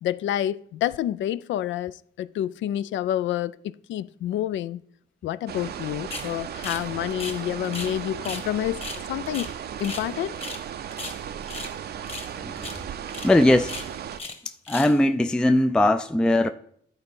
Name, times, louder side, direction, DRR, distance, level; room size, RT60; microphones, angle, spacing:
voice 1, 0.0-4.8 5.2-8.8 9.1-9.5 9.8-10.4, left 12 dB, 70° left, 0.4 m, -28 dB
sound 1, 5.5-14.2, right 9 dB, 55° right, 0.5 m, -36 dB
sound 2, 6.1-6.3 6.6-7.9 8.2-8.5 8.8-10.1 10.4-10.6 10.9-11.7 12.1-12.3 12.6-12.8 13.1-13.3 13.6-14.4 14.6-15.0, left 3 dB, 30° left, 1.4 m, -37 dB
voice 2, 13.2-13.8 14.7-16.5, left 1 dB, 5° left, 0.4 m, -19 dB
11.0 x 4.0 x 5.3 m
cardioid pair, 90°, 20 cm